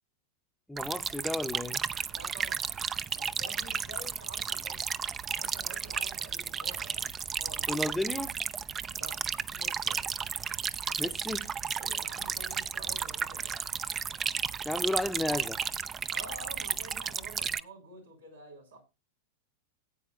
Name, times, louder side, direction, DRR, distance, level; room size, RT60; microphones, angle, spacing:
voice 1, 0.7-1.8 7.7-8.3 11.0-11.5 14.6-15.6, left 2 dB, 5° left, 0.7 m, -33 dB
sound 1, 0.8-17.6, right 7 dB, 25° right, 0.4 m, -33 dB
voice 2, 2.1-2.6 3.1-4.8 5.3-7.1 7.3-7.7 8.9-9.2 9.5-10.0 11.8-13.6 16.1-18.8, right 1 dB, 90° right, 4.9 m, -48 dB
17.5 x 8.5 x 2.4 m
hypercardioid pair, 100°, 0 cm